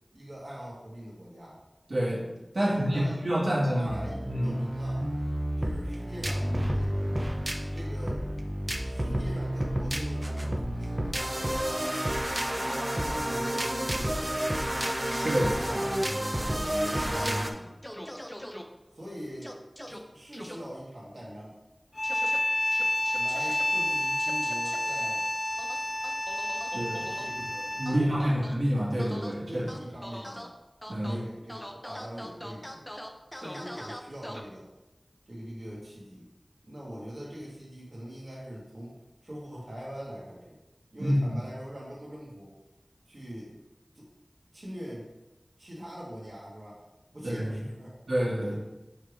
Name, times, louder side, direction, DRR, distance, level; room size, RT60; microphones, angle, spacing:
voice 1, 0.1-1.6 2.6-5.0 5.6-7.1 7.7-8.2 8.8-12.1 12.6-14.6 15.3-15.9 16.5-17.7 18.9-19.5 19.8-21.5 23.1-25.2 27.2-28.4 29.5-30.5 31.0-32.8 33.3-34.7 35.3-36.3 36.6-39.0 39.2-40.6 40.9-42.5 43.1-43.5 43.9-44.1 44.5-45.1 45.6-46.8 47.1-47.9, equal, 65° right, -7 dB, 1.6 m, -42 dB
voice 2, 1.9-2.3 2.5-4.6 15.2-15.6 26.7-27.1 27.8-29.7 30.9-31.2 41.0-41.4 47.2-47.5 48.1-48.5, equal, 85° right, -6 dB, 1.8 m, -27 dB
sound 1, 3.9-17.5, equal, 30° right, 0.7 m, -30 dB
sound 2, 16.9-17.4 17.8-18.6 19.4-20.0 20.3-20.6 22.0-22.4 22.7-23.6 24.2-24.8 25.6-27.3 27.9-28.5 29.0-29.3 29.7-30.5 30.8-31.2 31.5-34.4, equal, 10° left, 0.7 m, -42 dB
sound 3, 21.9-28.1, left 1 dB, 50° left, 1.2 m, -29 dB
5.7 x 3.4 x 4.8 m, 0.99 s
wide cardioid pair, 45°, 0 cm